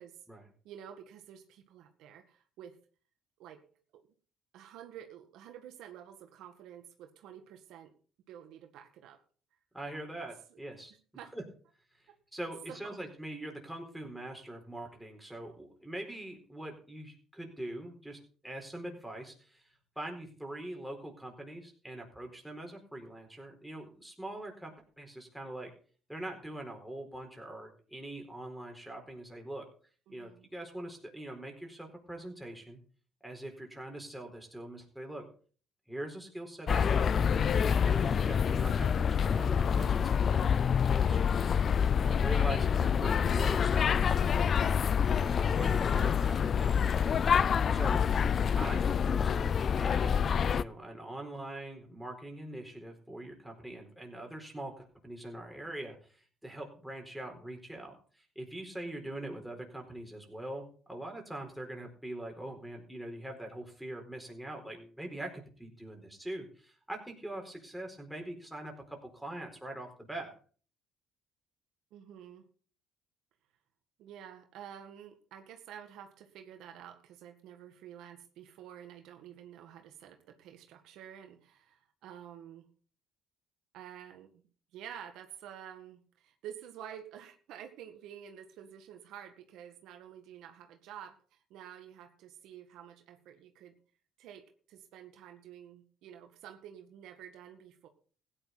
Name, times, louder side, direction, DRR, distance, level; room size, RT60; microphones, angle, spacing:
voice 1, 0.6-2.8 3.4-4.0 4.5-7.9 8.3-9.2 10.5-10.6 11.1-11.3 12.1-12.2 12.7-13.0 30.1-30.5 71.9-72.5 74.0-82.7 83.7-84.4 84.7-93.8 94.2-97.9, right 9 dB, 75° right, 5 dB, 1.9 m, -50 dB
voice 2, 9.7-10.9 11.3-11.4 12.3-25.7 26.1-29.6 30.1-32.8 33.2-35.3 35.9-37.1 37.7-40.5 41.0-41.7 42.0-44.2 45.2-46.7 47.7-48.0 48.6-70.3, right 1 dB, 5° right, 2 dB, 4.4 m, -43 dB
sound 1, 36.7-50.6, left 7 dB, 45° left, 0.5 m, -27 dB
16.0 x 10.0 x 4.2 m, 0.42 s
cardioid pair, 95°, 0 cm